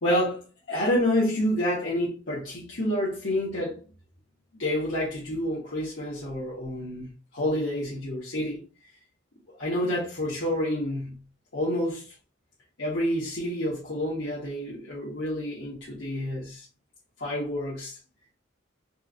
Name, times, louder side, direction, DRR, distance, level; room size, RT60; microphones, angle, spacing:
voice 1, 0.0-3.8 4.5-8.6 9.6-11.2 11.5-12.1 12.8-16.7 17.2-18.0, left 1 dB, 75° left, 1.2 m, -28 dB
4.3 x 2.2 x 2.5 m
head